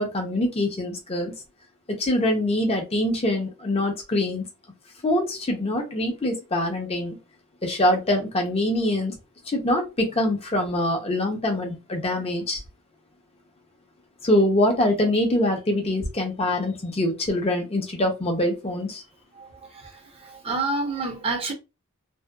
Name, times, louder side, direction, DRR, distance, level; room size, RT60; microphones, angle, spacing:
voice 1, 0.0-1.3 1.9-4.4 5.0-7.2 7.6-9.1 9.5-12.6 14.2-19.0, left 1 dB, 25° left, 0.6 m, -24 dB
voice 2, 20.2-21.5, right 3 dB, 25° right, 0.6 m, -28 dB
2.6 x 2.2 x 2.2 m
head